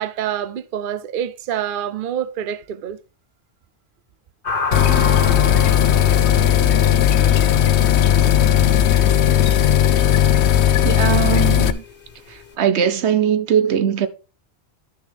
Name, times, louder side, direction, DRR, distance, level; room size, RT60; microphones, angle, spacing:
voice 1, 0.0-3.0 5.0-5.1, right 9 dB, 60° right, 0.8 m, -26 dB
sound 1, 4.4-12.5, left 4 dB, 55° left, 1.5 m, -31 dB
sound 2, 4.7-11.7, left 10 dB, 85° left, 1.0 m, -16 dB
voice 2, 10.8-11.8 12.3-14.1, right 9 dB, 85° right, 1.1 m, -20 dB
11.5 x 6.3 x 3.4 m
omnidirectional pair, 1.1 m